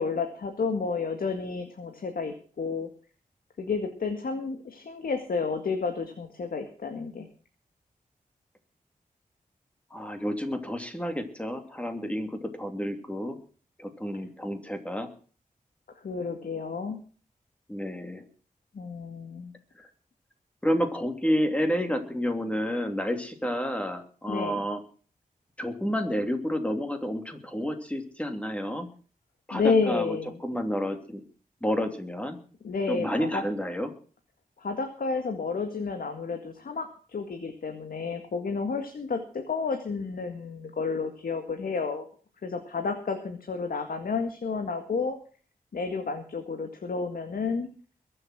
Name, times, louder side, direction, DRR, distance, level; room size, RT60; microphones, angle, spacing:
voice 1, 0.0-2.9 3.6-7.3 16.0-17.0 18.7-19.5 24.3-24.6 29.5-30.4 32.6-33.4 34.6-42.1 42.4-45.2 45.7-47.7, left 4 dB, 80° left, 5 dB, 2.0 m, -31 dB
voice 2, 9.9-13.4 13.8-15.1 17.7-18.2 19.8-19.9 20.6-24.8 25.6-28.9 29.5-31.2 31.6-32.4 32.9-33.9, equal, 10° left, 6 dB, 2.9 m, -30 dB
22.0 x 7.7 x 6.1 m, 0.41 s
wide cardioid pair, 85°, 15 cm